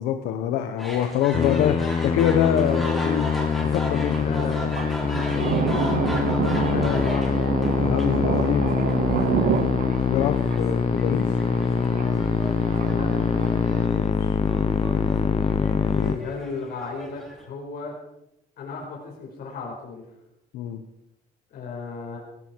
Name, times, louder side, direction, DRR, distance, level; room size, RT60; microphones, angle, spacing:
voice 1, 0.0-3.3 3.6-4.2 6.4-7.2 7.8-8.8 9.4-11.3 13.9-14.4 20.5-20.8, left 10 dB, 90° left, 7 dB, 1.2 m, -26 dB
sound 1, 0.8-17.4, equal, ahead, 5.7 m, -38 dB
Musical instrument, 1.3-16.2, left 6 dB, 35° left, 1.0 m, -24 dB
Thunder, 2.6-13.9, right 9 dB, 55° right, 0.9 m, -30 dB
voice 2, 4.2-6.0 6.5-7.3 12.9-13.3 15.9-18.0 18.6-20.1 21.5-22.2, left 4 dB, 65° left, -2 dB, 5.3 m, -35 dB
18.0 x 17.0 x 4.7 m, 0.83 s
cardioid pair, 110°, 17 cm